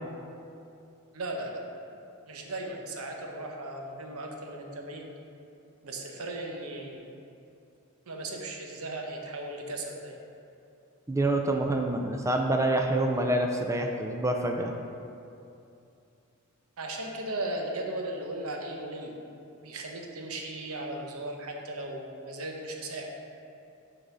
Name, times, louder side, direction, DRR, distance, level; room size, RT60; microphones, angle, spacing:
voice 1, 1.1-1.6 2.3-5.0 5.8-7.1 8.1-10.1 16.8-19.2 19.6-23.1, right 1 dB, 80° right, 1 dB, 0.9 m, -37 dB
voice 2, 11.1-14.7, right 1 dB, 15° right, 3 dB, 0.4 m, -27 dB
6.5 x 4.0 x 6.1 m, 2.6 s
head